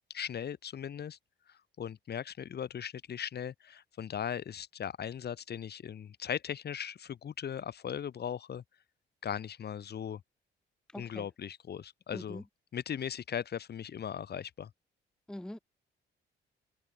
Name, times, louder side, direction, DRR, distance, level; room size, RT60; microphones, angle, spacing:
voice 1, 0.1-1.2 1.5-8.6 9.2-10.2 10.9-12.4 12.7-14.7, left 8 dB, 55° left, 2.3 m, -38 dB
voice 2, 10.9-11.3 12.1-12.4 15.3-15.6, left 1 dB, 5° left, 0.7 m, -43 dB
open air
cardioid pair, 90°, 20 cm